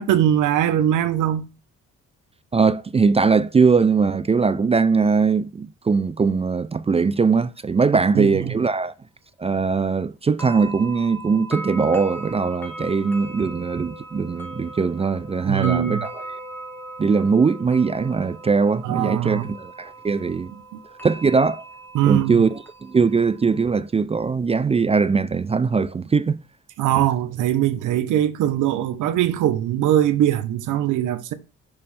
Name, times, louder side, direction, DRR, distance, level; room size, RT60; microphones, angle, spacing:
voice 1, 0.0-1.4 8.1-8.4 15.4-16.1 18.8-19.5 21.9-22.4 26.8-31.3, right 11 dB, 85° right, 0.9 m, -21 dB
voice 2, 2.5-8.9 9.4-16.4 17.0-20.5 21.0-21.6 22.0-26.4, right 5 dB, 20° right, 0.4 m, -20 dB
Bells Windchime, 10.4-23.8, right 2 dB, 5° left, 1.4 m, -38 dB
6.7 x 3.2 x 5.5 m
cardioid pair, 90°, 30 cm